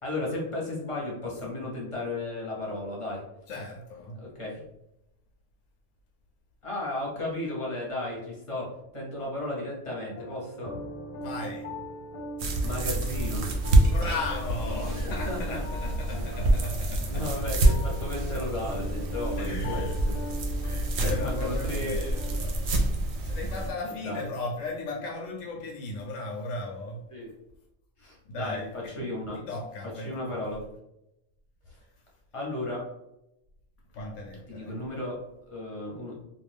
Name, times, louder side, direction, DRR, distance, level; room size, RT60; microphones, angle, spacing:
voice 1, 0.0-3.2 4.2-4.6 6.6-10.7 12.6-13.5 15.0-15.6 17.1-20.2 21.0-22.1 23.8-24.3 27.1-27.3 28.0-29.4 29.9-30.6 31.7-31.8 32.3-32.9 34.5-35.2 35.5-36.1, left 1 dB, 30° left, -3 dB, 0.7 m, -34 dB
voice 2, 3.5-4.2 11.2-11.7 13.8-17.7 19.4-19.9 20.6-22.9 23.2-27.0 28.3-30.4 33.9-34.8, left 2 dB, 75° left, -1 dB, 0.9 m, -36 dB
sound 1, 10.1-22.4, equal, 60° left, 0.3 m, -41 dB
sound 2, 12.4-23.7, right 1 dB, 65° right, 0.8 m, -27 dB
2.4 x 2.3 x 3.3 m, 0.86 s
omnidirectional pair, 1.3 m